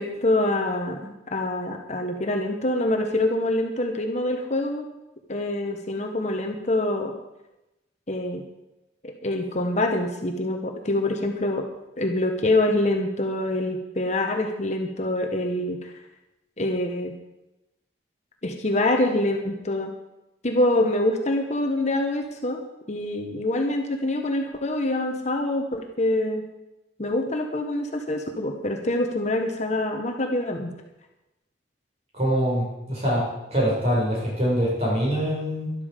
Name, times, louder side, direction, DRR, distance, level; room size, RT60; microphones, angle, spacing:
voice 1, 0.0-4.9 5.3-7.1 8.1-8.4 9.0-11.7 12.0-15.9 16.6-17.1 18.4-19.9 20.4-22.6 22.9-26.4 27.0-30.7, left 1 dB, 40° left, 4 dB, 1.2 m, -25 dB
voice 2, 32.1-33.2 33.5-35.7, equal, 35° right, -4 dB, 6.5 m, -24 dB
13.0 x 12.0 x 5.2 m, 0.97 s
head